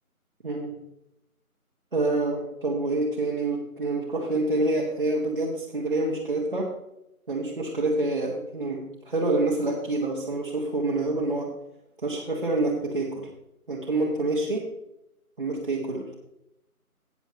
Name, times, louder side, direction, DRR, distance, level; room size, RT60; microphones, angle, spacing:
voice 1, 0.4-0.7 1.9-6.7 7.3-11.5 12.0-13.3 13.7-14.7 15.4-16.2, right 2 dB, 35° right, -4 dB, 1.6 m, -27 dB
18.0 x 6.9 x 2.9 m, 0.85 s
figure-of-eight pair, 170°, 45 cm